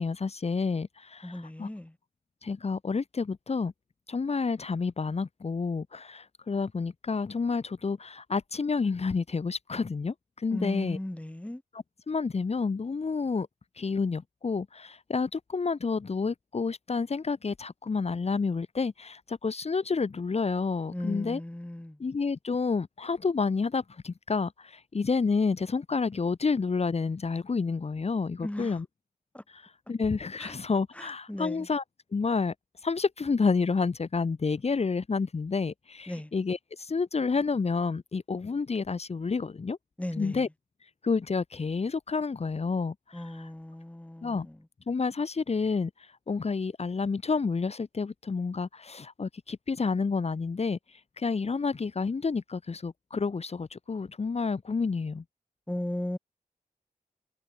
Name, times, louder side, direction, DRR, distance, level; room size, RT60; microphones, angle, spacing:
voice 1, 0.0-1.7 2.4-3.7 4.1-11.0 12.1-13.5 13.7-21.4 22.0-28.8 29.5-31.8 32.1-32.5 32.8-39.8 40.2-40.5 40.8-43.5 44.2-44.5 44.9-55.2, left 4 dB, 45° left, 3.0 m, -29 dB
voice 2, 1.2-2.0 10.5-11.6 20.9-22.0 28.4-28.8 29.3-29.4 30.4-30.6 30.9-31.7 36.1-36.3 40.0-40.4 43.1-44.6 55.7-56.2, left 1 dB, 10° left, 5.1 m, -36 dB
wide cardioid pair, 140°, 15 cm